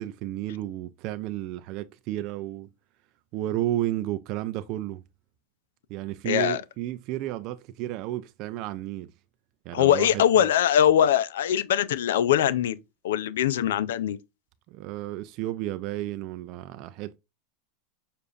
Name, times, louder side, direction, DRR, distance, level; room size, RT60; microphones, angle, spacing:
voice 1, 0.0-2.7 3.3-5.0 5.9-9.1 9.7-10.5 14.7-17.2, right 14 dB, 50° right, 0.4 m, -32 dB
voice 2, 6.2-6.6 9.7-14.2, left 10 dB, 90° left, 0.5 m, -22 dB
6.7 x 2.5 x 2.4 m
supercardioid pair, 140°, 0 cm